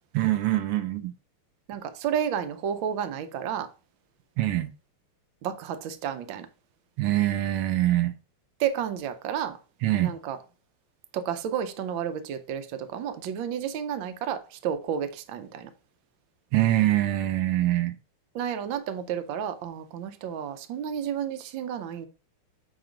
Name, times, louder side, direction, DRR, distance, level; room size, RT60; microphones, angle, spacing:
voice 1, 0.1-1.1 4.4-4.7 7.0-8.1 9.8-10.1 16.5-17.9, right 14 dB, 90° right, 1.6 m, -24 dB
voice 2, 1.7-3.7 5.4-6.5 8.6-9.6 10.0-10.4 11.1-15.7 18.3-22.1, right 8 dB, 70° right, 1.5 m, -31 dB
8.7 x 3.0 x 5.1 m
omnidirectional pair, 2.4 m